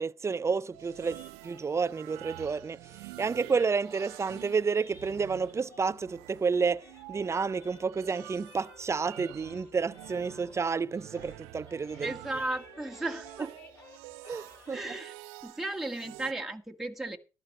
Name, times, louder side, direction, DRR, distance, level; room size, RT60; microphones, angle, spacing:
voice 1, 0.0-2.8 3.2-12.1 14.3-14.8, right 5 dB, 30° right, 0.6 m, -30 dB
sound 1, 0.7-16.3, right 19 dB, 80° right, 0.7 m, -48 dB
sound 2, 1.0-6.1 6.4-10.9 11.1-15.0, left 2 dB, 30° left, 7.6 m, -55 dB
voice 2, 12.0-13.5 14.7-15.2 15.4-17.2, right 2 dB, 5° right, 1.9 m, -35 dB
13.5 x 11.5 x 4.0 m
hypercardioid pair, 60°, 10 cm